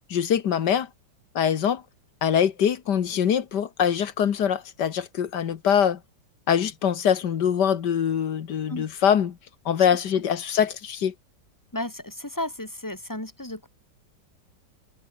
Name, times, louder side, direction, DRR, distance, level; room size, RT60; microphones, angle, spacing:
voice 1, 0.1-0.9 1.4-1.8 2.2-6.0 6.5-9.4 9.7-11.1, left 8 dB, 65° left, 1.8 m, -23 dB
voice 2, 11.7-13.7, left 1 dB, 10° left, 2.9 m, -33 dB
omnidirectional pair, 2.0 m